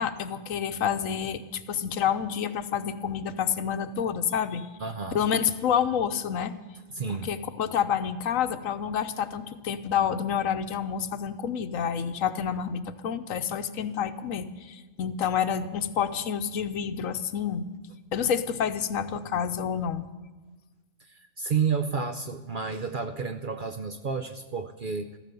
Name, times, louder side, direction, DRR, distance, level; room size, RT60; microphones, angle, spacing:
voice 1, 0.0-4.7 5.1-6.5 7.2-17.6 18.1-20.1, left 8 dB, 70° left, 11 dB, 1.2 m, -28 dB
voice 2, 4.8-5.2 6.9-7.3 21.0-25.2, right 5 dB, 50° right, 8 dB, 0.7 m, -31 dB
14.5 x 13.5 x 6.8 m, 1.3 s
omnidirectional pair, 1.4 m